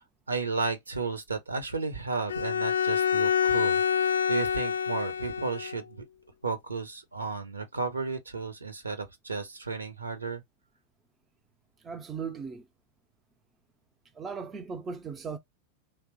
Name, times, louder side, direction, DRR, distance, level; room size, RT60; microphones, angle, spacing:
voice 1, 0.0-6.0 6.4-10.4, right 4 dB, 80° right, 0.7 m, -33 dB
Bowed string instrument, 2.3-5.8, left 7 dB, 70° left, 0.3 m, -27 dB
voice 2, 11.8-12.7 14.1-15.4, right 5 dB, 20° right, 0.5 m, -37 dB
3.2 x 2.0 x 3.0 m
figure-of-eight pair, 90°, 0 cm